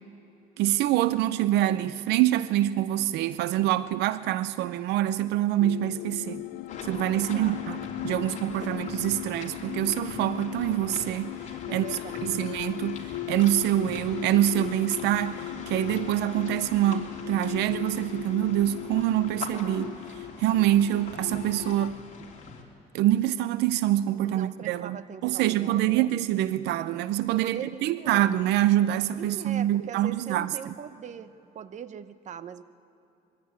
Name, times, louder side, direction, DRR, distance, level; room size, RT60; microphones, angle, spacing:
voice 1, 0.6-6.4 6.8-7.8 8.0-11.4 11.7-22.0 22.9-25.0 25.2-30.7, right 13 dB, 85° right, 0.6 m, -25 dB
sound 1, 5.6-21.9, left 17 dB, 85° left, 0.5 m, -38 dB
sound 2, 6.7-22.6, left 5 dB, 45° left, 3.4 m, -43 dB
voice 2, 7.1-7.6 11.7-12.5 24.1-26.1 27.4-28.2 29.2-31.3 31.5-32.6, right 8 dB, 45° right, 0.9 m, -41 dB
22.5 x 16.0 x 9.7 m
cardioid pair, 110°, 17 cm